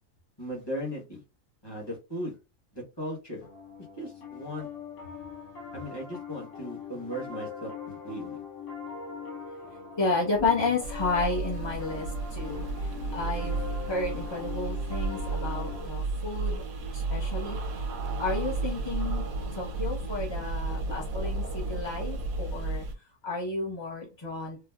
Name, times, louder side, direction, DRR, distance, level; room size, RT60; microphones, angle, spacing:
voice 1, 0.4-1.2 1.6-2.3 2.7-3.5 4.0-4.7 5.7-8.4, equal, 20° left, -3 dB, 0.9 m, -37 dB
Piano, 3.4-15.9, left 6 dB, 65° left, 1.0 m, -41 dB
voice 2, 10.0-12.1 12.3-12.7 13.1-13.6 13.9-16.6 16.9-17.6 18.2-19.2 19.6-22.8 23.2-24.7, left 3 dB, 35° left, -5 dB, 0.4 m, -31 dB
sound 1, 10.8-22.9, right 3 dB, 90° right, 1.0 m, -33 dB
3.2 x 2.0 x 2.3 m, 0.29 s
omnidirectional pair, 1.4 m